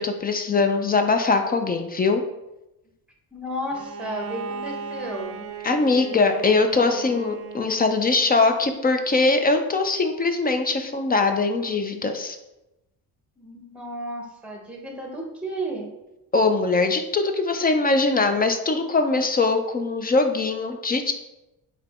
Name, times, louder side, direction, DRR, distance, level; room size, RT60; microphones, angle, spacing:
voice 1, 0.0-2.2 5.6-12.4 16.3-21.1, left 3 dB, 25° left, 6 dB, 0.3 m, -22 dB
voice 2, 3.3-5.5 13.4-15.9, right 1 dB, 5° right, 0 dB, 0.9 m, -33 dB
Bowed string instrument, 3.7-8.4, right 5 dB, 40° right, 0.4 m, -37 dB
4.0 x 2.8 x 4.2 m, 0.93 s
cardioid pair, 115°, 37 cm